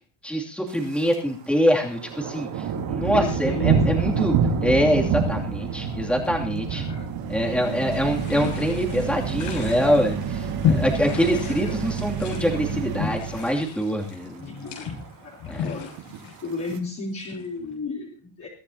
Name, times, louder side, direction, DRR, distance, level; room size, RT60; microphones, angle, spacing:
voice 1, 0.2-6.8 7.3-14.5 15.5-15.7, equal, ahead, -1 dB, 2.7 m, -24 dB
Thunder, 0.7-1.2 1.5-11.9 12.2-12.6 13.0-13.5 13.7-13.8 14.0-14.1 14.5-15.1 15.8-16.8, right 6 dB, 80° right, 4.8 m, -28 dB
voice 2, 3.1-4.1 6.7-7.1 11.3-11.8 14.4-14.9 15.2-15.9 16.4-18.5, left 3 dB, 35° left, -5 dB, 3.7 m, -34 dB
sound 1, 7.0-13.7, right 7 dB, 45° right, 1.6 m, -31 dB
sound 2, 8.1-17.7, left 7 dB, 75° left, 7.6 m, -32 dB
22.5 x 14.5 x 2.9 m, 0.39 s
cardioid pair, 170°, 50 cm